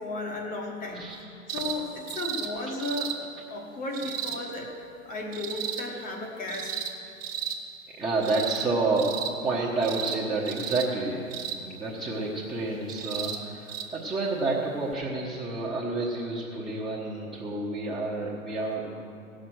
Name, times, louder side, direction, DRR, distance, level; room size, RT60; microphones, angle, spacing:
voice 1, 0.0-3.1 3.5-6.9, left 2 dB, 20° left, 1 dB, 1.1 m, -35 dB
sound 1, 1.5-1.8 2.1-2.5 2.8-3.2 3.9-4.4 5.3-5.8 6.5-6.9 7.2-7.6 8.2-8.7 9.0-9.3 9.8-10.2 10.5-10.9 11.3-11.6 12.9-13.4 13.7-13.8 14.9-15.0, right 9 dB, 45° right, 1.2 m, -33 dB
voice 2, 8.0-11.3 11.6-19.1, right 3 dB, 10° right, -5 dB, 1.1 m, -29 dB
17.0 x 6.5 x 6.3 m, 2.5 s
figure-of-eight pair, 105°, 42 cm